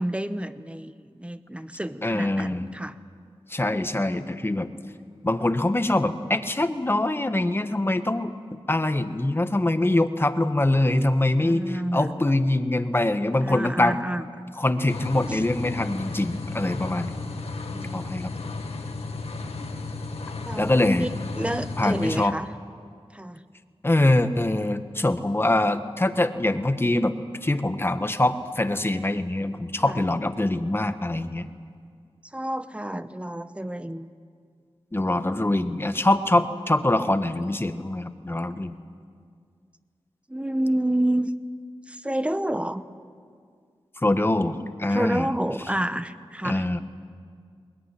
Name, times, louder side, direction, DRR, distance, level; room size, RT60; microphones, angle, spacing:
voice 1, 0.0-3.0 11.4-12.1 13.4-14.5 15.3-15.4 17.6-18.0 20.4-21.1 21.3-22.5 23.1-23.4 29.8-30.0 32.2-34.1 40.3-41.3 41.9-42.8 44.9-46.7, right 1 dB, 10° right, 12 dB, 1.0 m, -29 dB
voice 2, 2.0-2.6 3.5-4.7 5.2-11.6 11.9-14.0 14.6-17.1 17.9-18.3 20.6-21.1 21.8-22.3 23.8-27.1 27.4-31.5 34.9-38.8 44.0-45.3 46.4-46.8, left 1 dB, 20° left, 9 dB, 1.3 m, -24 dB
sound 1, 14.9-22.3, left 3 dB, 85° left, 1.9 m, -34 dB
21.0 x 21.0 x 10.0 m, 2.1 s
wide cardioid pair, 70°, 10 cm